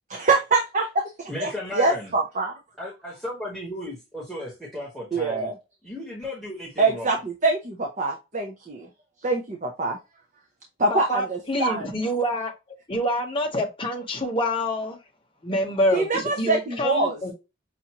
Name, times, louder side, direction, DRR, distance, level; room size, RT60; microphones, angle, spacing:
voice 1, 0.1-2.5 5.1-5.5 6.8-8.9 9.2-10.0 10.8-11.9 15.9-17.2, right 3 dB, 35° right, 0.6 m, -24 dB
voice 2, 1.3-2.1 2.8-5.5 5.8-7.2, left 1 dB, ahead, 1.0 m, -35 dB
voice 3, 10.9-12.5 12.9-15.0 15.4-17.3, left 1 dB, 25° left, 0.9 m, -26 dB
5.7 x 2.5 x 2.9 m
head